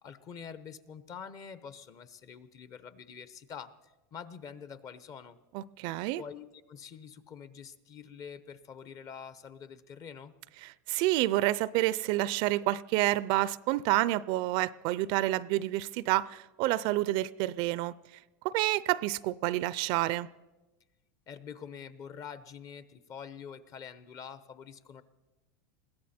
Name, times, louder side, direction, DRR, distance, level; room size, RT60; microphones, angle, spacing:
voice 1, 0.0-3.7 4.1-5.4 6.2-10.3 21.3-25.0, left 7 dB, 40° left, 1.0 m, -46 dB
voice 2, 5.5-6.2 10.6-17.9 18.4-20.3, right 16 dB, 55° right, 0.5 m, -29 dB
21.5 x 15.5 x 4.3 m
supercardioid pair, 125°, 10 cm